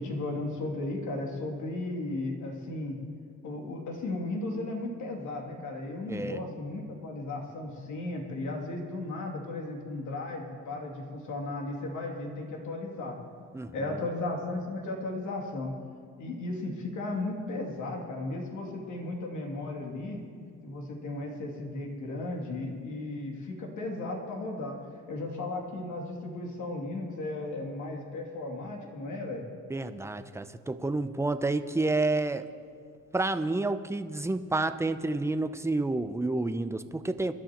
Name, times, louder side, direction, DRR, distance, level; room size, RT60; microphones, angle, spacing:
voice 1, 0.0-3.0 3.4-13.2 13.7-15.7 16.2-20.2 20.6-24.8 25.1-29.4, left 2 dB, 75° left, 0 dB, 2.8 m, -35 dB
voice 2, 6.1-6.4 13.5-14.1 29.7-32.5 33.1-37.3, right 2 dB, 10° right, 10 dB, 0.7 m, -29 dB
26.5 x 12.0 x 3.1 m, 2.2 s
cardioid pair, 90°, 30 cm